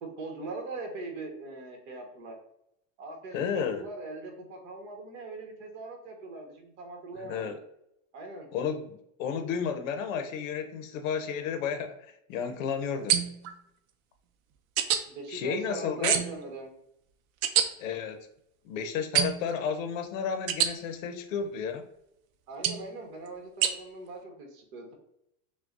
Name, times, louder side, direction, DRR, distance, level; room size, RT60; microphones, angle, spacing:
voice 1, 0.0-2.4 3.0-7.6 8.1-8.5 13.1-13.2 15.1-16.7 22.5-24.9, right 2 dB, 55° right, 1 dB, 1.4 m, -41 dB
voice 2, 3.3-3.8 7.2-7.6 8.5-13.2 15.3-16.2 17.8-18.3 18.6-21.8, left 6 dB, 65° left, 6 dB, 0.8 m, -32 dB
sound 1, 13.1-13.5 14.8-15.0 16.0-16.4 17.4-17.7 19.1-19.5 20.5-20.7 22.6-22.9 23.6-23.7, right 9 dB, 80° right, 0.6 m, -26 dB
5.9 x 2.3 x 2.5 m, 0.77 s
supercardioid pair, 160°, 41 cm